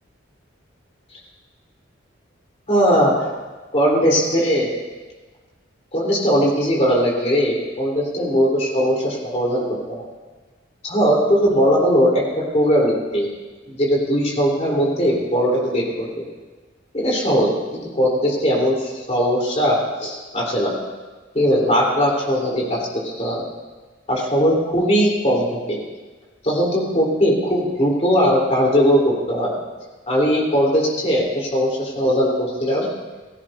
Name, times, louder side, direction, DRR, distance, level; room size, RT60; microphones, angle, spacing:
voice 1, 2.7-3.3 3.7-4.7 5.9-9.6 9.9-10.1 10.8-12.2 12.5-13.3 13.7-16.2 16.9-17.5 17.9-18.8 19.1-20.8 21.3-23.4 24.1-25.8 26.4-29.5 30.1-32.9, equal, 35° left, -4 dB, 3.6 m, -19 dB
17.5 x 16.0 x 2.7 m, 1.3 s
head